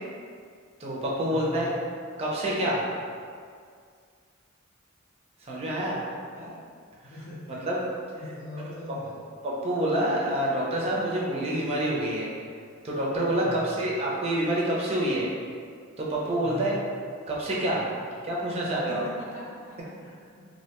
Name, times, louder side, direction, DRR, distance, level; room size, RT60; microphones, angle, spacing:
voice 1, 0.8-1.7 2.2-2.8 5.4-6.0 7.6-7.8 9.4-12.3 12.8-15.3 16.0-16.7 17.3-17.9 18.2-19.0, right 1 dB, 30° right, -5 dB, 0.4 m, -27 dB
voice 2, 1.3-1.7 6.3-6.5 7.0-7.6 8.2-9.2 13.4-13.9 16.4-16.8 18.6-20.4, equal, 70° left, -6 dB, 0.7 m, -41 dB
2.5 x 2.1 x 2.8 m, 2.1 s
head